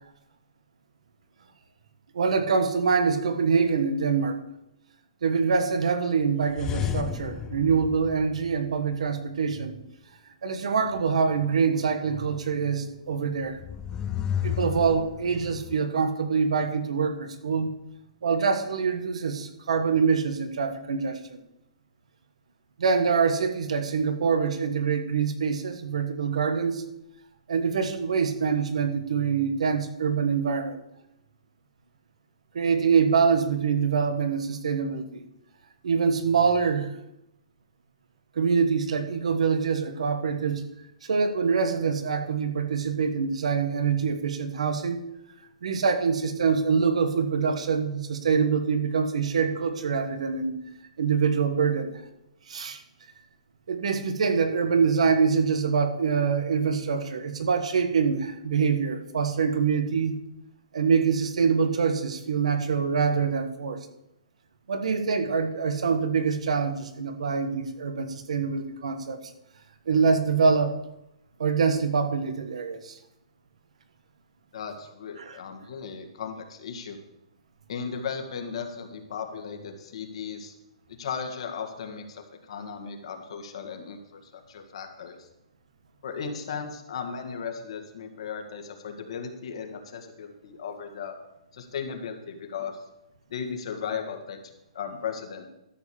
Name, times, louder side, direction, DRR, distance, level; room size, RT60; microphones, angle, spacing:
voice 1, 2.1-4.4 5.2-9.8 10.4-13.6 14.4-17.7 18.2-21.4 22.8-26.8 27.5-30.8 32.5-35.2 35.8-36.9 38.3-40.6 41.0-45.0 45.6-50.5 51.0-52.0 52.5-52.8 53.7-60.2 60.7-63.8 64.7-69.2 69.9-70.7 71.4-73.0 75.2-75.4, right 5 dB, 75° right, 8 dB, 1.5 m, -25 dB
sound 1, 6.5-8.9 13.5-15.8, left 9 dB, 15° left, 0.4 m, -32 dB
voice 2, 74.5-77.0 77.7-80.5 80.9-85.2 86.0-91.2 91.5-92.8 93.3-94.4 94.7-95.5, left 6 dB, 60° left, 4 dB, 1.9 m, -36 dB
13.0 x 5.3 x 7.1 m, 0.87 s
hypercardioid pair, 155°, 3 cm